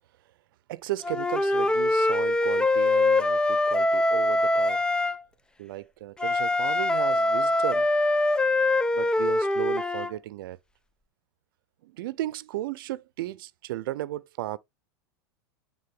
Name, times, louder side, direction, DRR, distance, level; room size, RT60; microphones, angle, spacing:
voice 1, 0.7-4.9 5.6-7.9 8.9-10.6 11.8-14.6, right 15 dB, 70° right, 0.6 m, -35 dB
Wind instrument woodwind instrument, 1.0-5.2 6.2-10.1, left 2 dB, 5° left, 0.4 m, -23 dB
9.4 x 3.7 x 3.7 m
hypercardioid pair, 105°, 12 cm